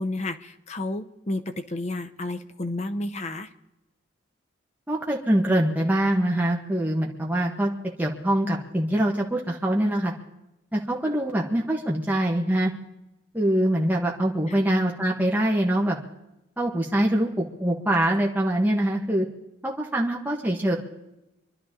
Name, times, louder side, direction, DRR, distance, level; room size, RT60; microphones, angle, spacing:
voice 1, 0.0-3.5 14.5-14.6, left 2 dB, 35° left, 8 dB, 0.6 m, -31 dB
voice 2, 4.9-7.7 8.0-10.1 10.7-12.7 13.3-16.0 16.6-19.3 19.6-20.8, right 1 dB, 10° right, -2 dB, 1.4 m, -24 dB
25.5 x 11.5 x 3.8 m, 0.94 s
head